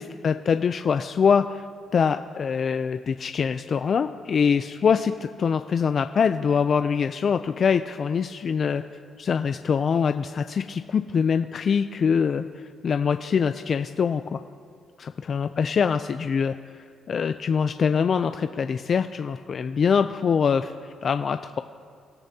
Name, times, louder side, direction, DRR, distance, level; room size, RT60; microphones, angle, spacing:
voice 1, 0.0-1.6 1.9-8.8 9.2-14.4 15.0-16.6 17.1-21.6, left 6 dB, 50° left, 9 dB, 0.4 m, -24 dB
25.0 x 13.0 x 2.8 m, 2.2 s
cardioid pair, 90°, 0 cm